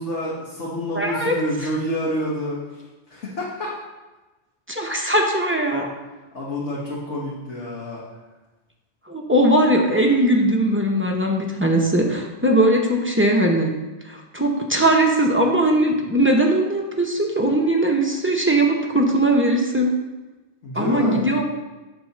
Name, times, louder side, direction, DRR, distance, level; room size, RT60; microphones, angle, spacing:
voice 1, 0.0-2.8 3.1-3.8 6.3-8.0 20.6-21.3, left 1 dB, 90° left, -6 dB, 1.7 m, -28 dB
voice 2, 0.9-1.4 4.7-5.9 9.1-13.7 14.0-19.9 20.7-21.4, right 1 dB, 10° right, 0 dB, 0.8 m, -19 dB
8.3 x 3.6 x 6.5 m, 1.1 s
omnidirectional pair, 1.2 m